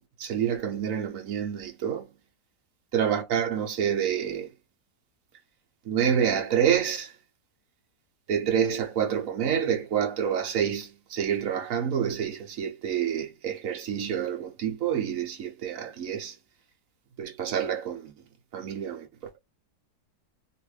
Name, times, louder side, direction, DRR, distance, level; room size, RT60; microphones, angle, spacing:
voice 1, 0.2-2.1 2.9-4.5 5.8-7.1 8.3-16.4 17.2-18.1 18.5-19.1, right 8 dB, 60° right, 1.1 m, -28 dB
3.1 x 2.5 x 3.2 m
omnidirectional pair, 1.8 m